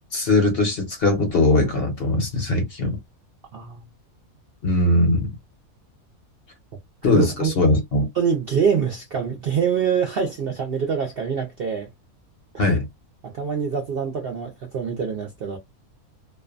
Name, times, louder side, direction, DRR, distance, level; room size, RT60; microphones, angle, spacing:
voice 1, 0.1-3.0 4.6-5.3 7.0-8.1 12.6-12.8, left 2 dB, 50° left, 0.8 m, -20 dB
voice 2, 7.1-7.5 8.2-11.9 13.2-15.6, right 7 dB, 65° right, 0.6 m, -25 dB
2.5 x 2.1 x 2.4 m
omnidirectional pair, 1.5 m